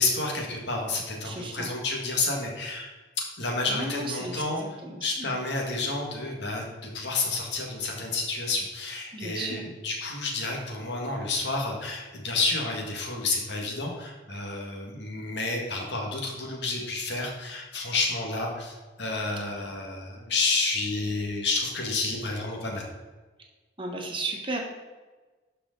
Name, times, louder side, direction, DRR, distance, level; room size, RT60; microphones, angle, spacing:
voice 1, 0.0-2.9 3.4-4.6 5.0-22.9, left 3 dB, 70° left, 0 dB, 1.9 m, -30 dB
voice 2, 1.2-1.7 3.7-5.4 9.1-9.6 23.8-24.6, right 2 dB, 25° right, 1 dB, 1.4 m, -34 dB
12.0 x 5.0 x 3.9 m, 1.3 s
head